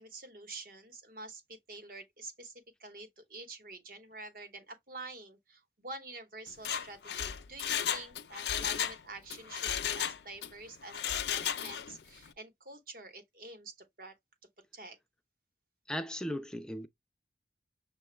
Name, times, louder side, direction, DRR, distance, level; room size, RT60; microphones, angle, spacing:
voice 1, 0.0-14.1 14.7-15.0, right 2 dB, 50° right, 1.0 m, -47 dB
Mechanisms, 6.5-9.0 9.3-10.5 10.9-12.0 12.3-12.4, left 9 dB, 75° left, 0.5 m, -34 dB
voice 2, 15.9-16.9, equal, 5° left, 0.3 m, -37 dB
6.6 x 2.3 x 3.1 m
head